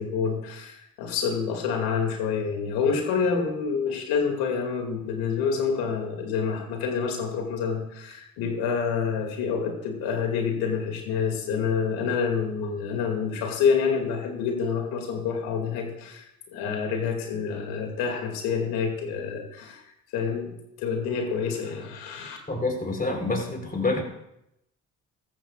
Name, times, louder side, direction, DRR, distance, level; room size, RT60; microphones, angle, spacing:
voice 1, 0.0-19.8 20.1-22.4, left 6 dB, 80° left, 3 dB, 2.4 m, -27 dB
voice 2, 22.5-24.0, left 2 dB, 25° left, 2 dB, 3.8 m, -27 dB
15.0 x 13.5 x 2.4 m, 0.81 s
supercardioid pair, 60°, 37 cm